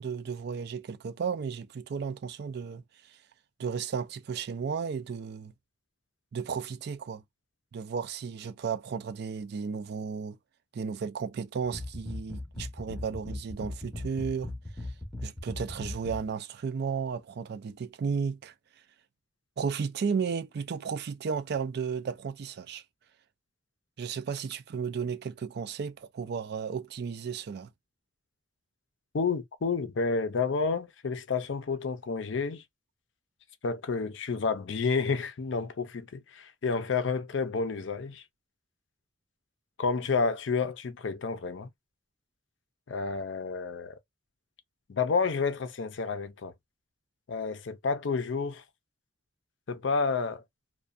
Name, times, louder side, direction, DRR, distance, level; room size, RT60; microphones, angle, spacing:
voice 1, 0.0-2.8 3.6-5.5 6.3-7.2 7.7-10.4 10.7-14.5 15.2-18.5 19.6-22.8 24.0-27.7, right 6 dB, 60° right, 0.4 m, -34 dB
sound 1, 11.7-16.3, left 2 dB, 5° left, 0.7 m, -38 dB
voice 2, 29.1-32.6 33.6-38.2 39.8-41.7 42.9-44.0 44.9-46.5 47.3-48.6 49.7-50.4, left 4 dB, 70° left, 0.5 m, -30 dB
2.6 x 2.3 x 2.3 m
head